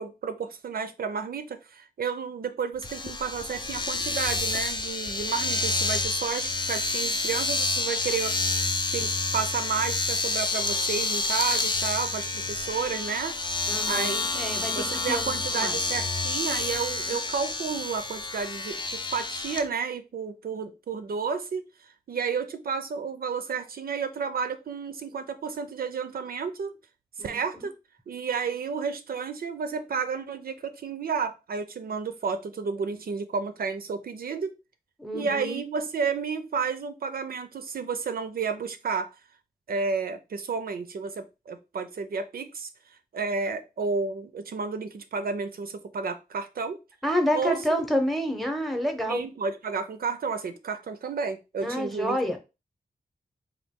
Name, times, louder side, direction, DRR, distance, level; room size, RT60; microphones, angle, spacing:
voice 1, 0.0-8.4 8.9-14.3 14.8-21.6 22.1-26.7 27.2-27.7 28.1-34.6 35.1-39.1 39.7-46.8 47.3-47.6 49.1-52.2, right 5 dB, 65° right, 0.5 m, -31 dB
Domestic sounds home sounds, 2.8-19.6, left 3 dB, 30° left, 0.4 m, -29 dB
voice 2, 13.7-15.8 17.0-17.2 27.2-27.6 35.0-35.6 47.0-49.2 51.6-52.4, equal, ahead, 0.8 m, -29 dB
3.9 x 2.4 x 3.5 m
wide cardioid pair, 105°, 16 cm